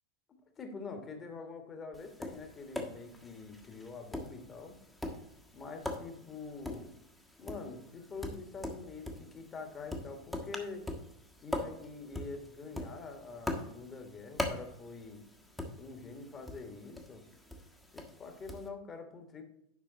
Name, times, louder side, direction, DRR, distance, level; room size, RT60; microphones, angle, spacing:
voice 1, 0.6-4.7 5.5-6.9 7.4-10.8 11.4-15.2 15.8-17.2 17.9-19.4, left 4 dB, 25° left, 6 dB, 1.6 m, -45 dB
Tap, 1.9-18.7, left 1 dB, 5° left, 1.3 m, -43 dB
9.7 x 5.8 x 4.0 m, 0.77 s
figure-of-eight pair, 90°, 0 cm